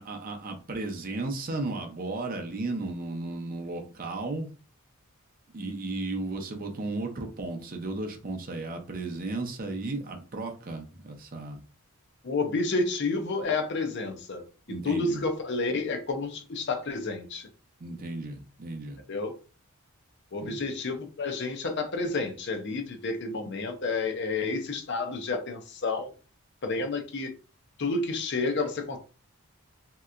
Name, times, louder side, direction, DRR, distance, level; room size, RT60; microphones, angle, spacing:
voice 1, 0.0-4.5 5.5-11.6 13.4-13.5 14.7-15.2 17.8-19.0 20.4-20.6, right 2 dB, 40° right, 0.6 m, -34 dB
voice 2, 12.2-17.5 19.1-19.3 20.3-26.1 26.6-27.3 27.8-29.0, left 3 dB, 50° left, 0.5 m, -30 dB
3.3 x 2.8 x 2.4 m
head